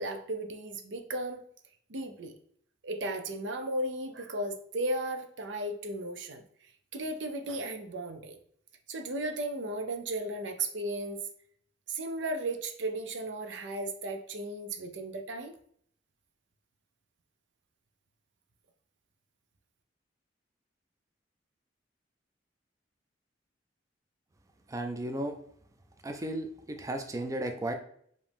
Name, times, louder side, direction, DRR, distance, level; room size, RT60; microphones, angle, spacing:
voice 1, 0.0-1.4 1.9-2.4 2.8-6.4 6.9-8.4 8.9-11.2 11.9-15.5, right 1 dB, 80° right, 6 dB, 0.6 m, -35 dB
voice 2, 24.7-25.3 26.0-27.7, right 1 dB, 20° right, 5 dB, 0.4 m, -34 dB
5.0 x 2.7 x 3.4 m, 0.64 s
head